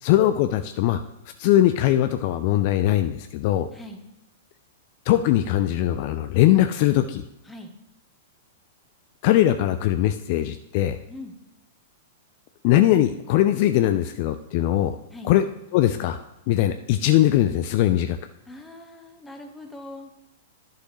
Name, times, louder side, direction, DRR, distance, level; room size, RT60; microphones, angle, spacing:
voice 1, 0.0-1.0 1.4-3.7 5.1-7.2 9.2-11.0 12.6-15.0 15.2-15.5 15.7-16.2 16.5-18.2, left 13 dB, 45° left, 9 dB, 0.4 m, -20 dB
voice 2, 3.7-4.0 7.5-7.7 11.1-11.3 15.1-15.3 18.5-20.1, left 1 dB, 5° left, 4 dB, 1.2 m, -41 dB
11.0 x 6.5 x 3.1 m, 0.93 s
figure-of-eight pair, 100°, 0 cm